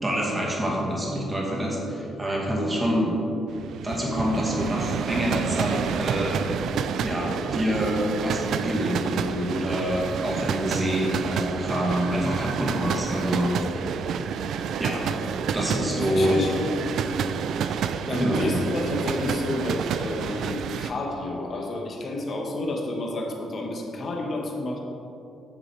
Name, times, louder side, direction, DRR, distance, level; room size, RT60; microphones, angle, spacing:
voice 1, 0.0-3.2 3.8-6.4 7.0-13.5 14.8-15.1 15.5-16.4 18.1-18.6, equal, 15° right, -3 dB, 2.2 m, -26 dB
sound 1, 3.5-20.9, right 7 dB, 75° right, 0.4 m, -29 dB
voice 2, 15.5-16.6 18.1-24.8, left 2 dB, 45° left, 1 dB, 1.4 m, -30 dB
8.6 x 6.8 x 4.8 m, 2.8 s
cardioid pair, 90°, 0 cm